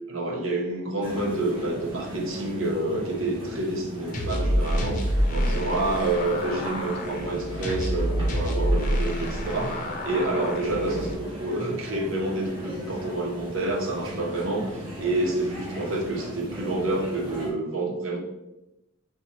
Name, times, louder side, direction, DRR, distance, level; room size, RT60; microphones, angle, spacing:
voice 1, 0.1-18.2, right 2 dB, 80° right, 0 dB, 0.9 m, -28 dB
sound 1, 1.0-17.5, equal, 25° right, 1.5 m, -38 dB
sound 2, 4.1-11.1, equal, 40° left, 0.6 m, -27 dB
4.3 x 2.3 x 4.2 m, 0.94 s
head